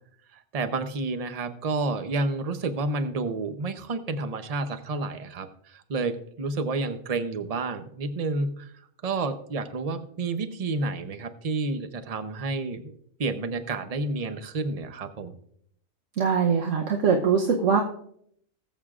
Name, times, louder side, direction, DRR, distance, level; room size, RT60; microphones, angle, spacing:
voice 1, 0.3-8.7 9.0-12.9 13.2-15.3, right 3 dB, 35° right, 9 dB, 0.6 m, -30 dB
voice 2, 16.2-17.8, right 6 dB, 70° right, 2 dB, 1.2 m, -22 dB
19.0 x 7.6 x 2.4 m, 0.67 s
omnidirectional pair, 1.4 m